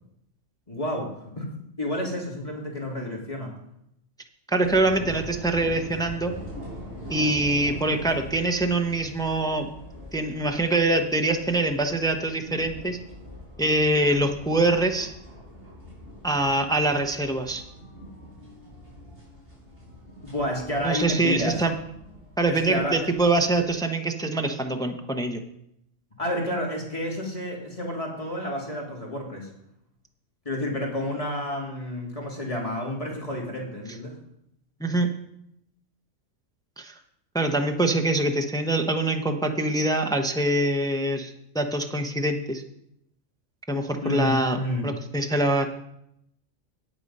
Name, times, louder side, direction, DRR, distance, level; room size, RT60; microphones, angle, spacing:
voice 1, 0.7-1.5 1.8-3.5 20.2-21.6 22.5-23.1 26.2-29.5 30.5-34.2 44.0-44.9, left 1 dB, 30° left, -2 dB, 2.3 m, -30 dB
voice 2, 4.5-6.3 7.1-9.7 10.1-13.0 13.6-15.1 16.2-17.6 20.8-21.7 22.4-25.4 34.8-35.1 36.8-36.9 37.3-42.6 43.7-45.7, right 2 dB, 5° left, 5 dB, 0.7 m, -24 dB
sound 1, 4.6-23.7, left 1 dB, 50° right, 5.4 m, -42 dB
9.2 x 8.7 x 5.4 m, 0.78 s
omnidirectional pair, 1.3 m